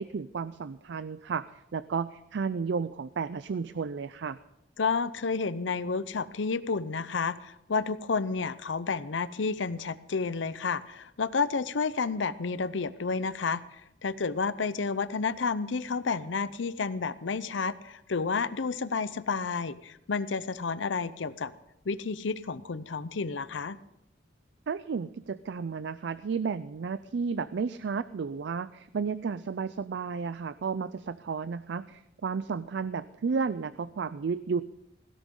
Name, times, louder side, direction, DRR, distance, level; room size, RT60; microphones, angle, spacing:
voice 1, 0.0-1.4 1.7-4.4 24.7-34.6, right 5 dB, 65° right, 15 dB, 0.4 m, -32 dB
voice 2, 4.8-13.6 14.0-21.5 21.9-23.8, left 4 dB, 85° left, 16 dB, 0.7 m, -30 dB
17.5 x 16.0 x 3.8 m, 0.82 s
head